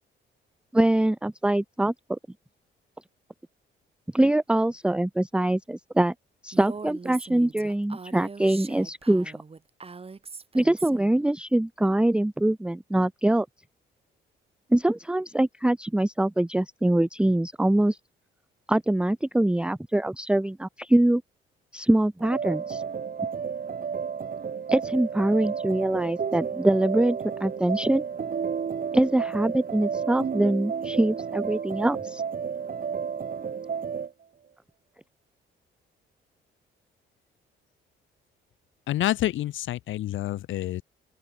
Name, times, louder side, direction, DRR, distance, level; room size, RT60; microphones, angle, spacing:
voice 1, 0.7-2.2 4.1-6.1 6.4-9.4 10.5-13.5 14.7-18.0 18.7-21.2 21.7-22.8 24.7-28.0 28.9-32.2, right 1 dB, 5° right, 0.6 m, -23 dB
Female speech woman speaking, 6.5-11.2, right 4 dB, 30° right, 3.3 m, -41 dB
sound 1, 22.2-34.1, right 6 dB, 45° right, 5.5 m, -32 dB
voice 2, 38.9-40.8, left 13 dB, 75° left, 1.1 m, -28 dB
open air
cardioid pair, 90°, 20 cm